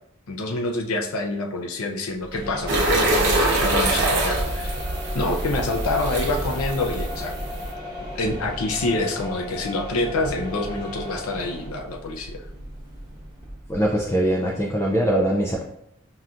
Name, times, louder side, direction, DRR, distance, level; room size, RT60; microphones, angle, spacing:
voice 1, 0.3-4.8 5.1-7.3 8.1-12.4, left 2 dB, 85° left, 2 dB, 0.5 m, -27 dB
sound 1, 2.3-14.1, left 1 dB, 20° right, 0.9 m, -35 dB
sound 2, 2.7-7.7, right 2 dB, 55° right, 0.9 m, -24 dB
voice 2, 13.7-15.6, right 1 dB, 10° left, -2 dB, 0.3 m, -22 dB
5.7 x 2.3 x 2.5 m, 0.78 s
head